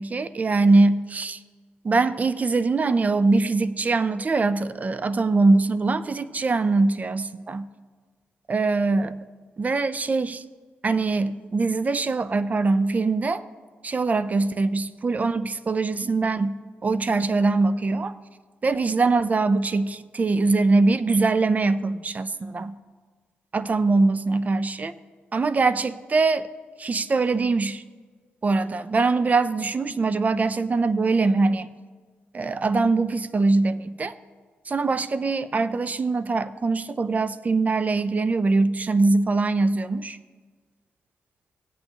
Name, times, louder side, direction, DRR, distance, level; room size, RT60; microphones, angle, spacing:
voice 1, 0.0-1.4 1.8-7.7 8.5-9.2 9.6-10.4 10.8-13.4 13.8-18.1 18.6-22.7 23.5-24.9 25.3-26.5 26.8-27.8 28.4-31.8 32.3-34.1 34.7-40.2, right 3 dB, 35° right, 14 dB, 0.5 m, -22 dB
17.5 x 8.7 x 3.0 m, 1.5 s
cardioid pair, 65°, 4 cm